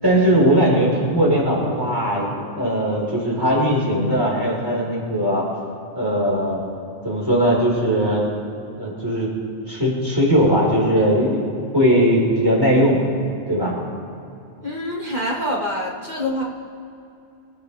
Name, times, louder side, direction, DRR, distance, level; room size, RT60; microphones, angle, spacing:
voice 1, 0.0-5.4 5.9-6.6 7.0-8.2 8.8-9.3 9.7-13.0 13.5-13.7, equal, 20° right, -6 dB, 5.1 m, -19 dB
voice 2, 14.6-16.4, left 1 dB, 40° right, -3 dB, 2.1 m, -25 dB
28.0 x 14.5 x 3.6 m, 2.7 s
omnidirectional pair, 1.2 m